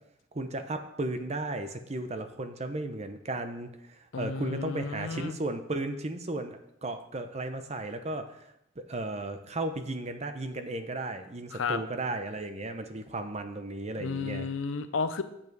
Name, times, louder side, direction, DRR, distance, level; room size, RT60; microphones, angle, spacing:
voice 1, 0.3-8.4 8.8-14.5, right 2 dB, 35° right, 8 dB, 0.8 m, -35 dB
voice 2, 4.1-5.4 11.5-11.8 14.0-15.2, left 4 dB, 90° left, 11 dB, 0.7 m, -32 dB
7.7 x 7.3 x 4.7 m, 0.79 s
head